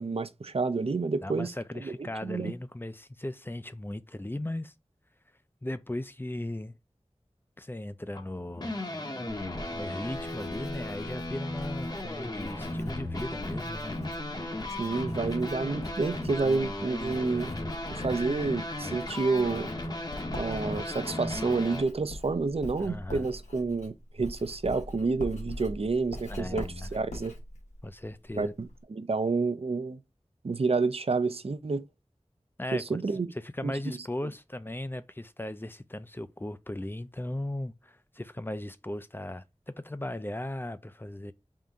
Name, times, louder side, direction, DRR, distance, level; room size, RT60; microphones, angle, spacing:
voice 1, 0.0-2.5 14.8-17.5 18.0-19.7 20.3-27.3 28.3-30.0 30.4-31.8 32.7-33.3 33.6-34.0 34.2-34.3, right 4 dB, 60° right, 0.5 m, -29 dB
voice 2, 1.2-4.7 5.6-6.8 7.6-8.7 9.7-14.0 22.8-23.3 26.3-26.9 27.8-28.5 32.6-33.0 33.4-41.3, left 1 dB, 20° left, 0.4 m, -37 dB
sound 1, 8.1-21.8, left 1 dB, 35° left, 0.8 m, -36 dB
Writing, 9.3-28.8, left 1 dB, 80° left, 1.2 m, -44 dB
sound 2, 17.9-20.7, left 2 dB, 65° left, 0.8 m, -49 dB
3.7 x 2.6 x 4.4 m
wide cardioid pair, 45°, 12 cm